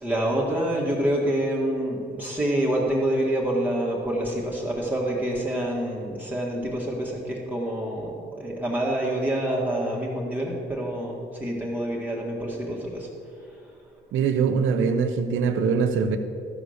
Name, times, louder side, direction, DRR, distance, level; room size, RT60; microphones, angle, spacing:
voice 1, 0.0-13.1, right 1 dB, 10° right, -5 dB, 1.9 m, -27 dB
voice 2, 14.1-16.2, right 6 dB, 85° right, 8 dB, 0.8 m, -23 dB
13.5 x 4.9 x 6.6 m, 2.4 s
cardioid pair, 90°, 20 cm